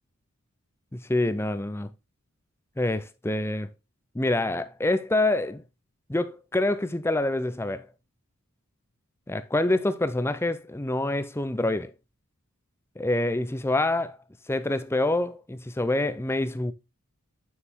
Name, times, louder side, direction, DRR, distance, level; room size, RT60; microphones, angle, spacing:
voice 1, 0.9-1.9 2.8-3.7 4.1-5.6 6.1-7.8 9.3-11.9 13.0-14.2 14.5-16.7, left 2 dB, 10° left, 0.5 m, -26 dB
7.0 x 6.5 x 3.5 m
head